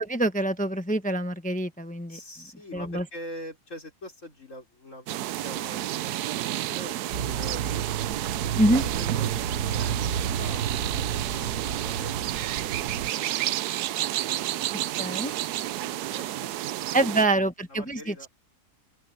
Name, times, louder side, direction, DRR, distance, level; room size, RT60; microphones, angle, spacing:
voice 1, 0.0-2.2 2.7-3.0 8.6-8.8 15.0-15.3 16.9-18.3, right 1 dB, 5° left, 0.8 m, -25 dB
voice 2, 2.1-5.1 5.4-6.2 6.5-7.0 7.2-7.6 8.7-14.3 15.8-17.4 17.7-18.3, equal, 50° left, 5.1 m, -44 dB
sound 1, 5.1-17.3, right 14 dB, 80° right, 1.2 m, -31 dB
sound 2, 7.1-13.1, right 7 dB, 60° right, 1.6 m, -31 dB
open air
omnidirectional pair, 1.7 m